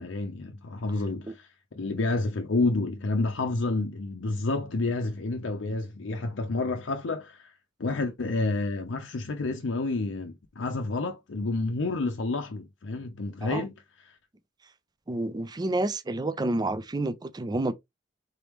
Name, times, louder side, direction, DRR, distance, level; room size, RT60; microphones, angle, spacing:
voice 1, 0.0-1.5 1.7-7.5 7.8-14.2, left 3 dB, 75° left, 0.6 m, -29 dB
voice 2, 15.1-17.7, right 2 dB, 20° right, 0.4 m, -29 dB
4.0 x 3.5 x 2.9 m
head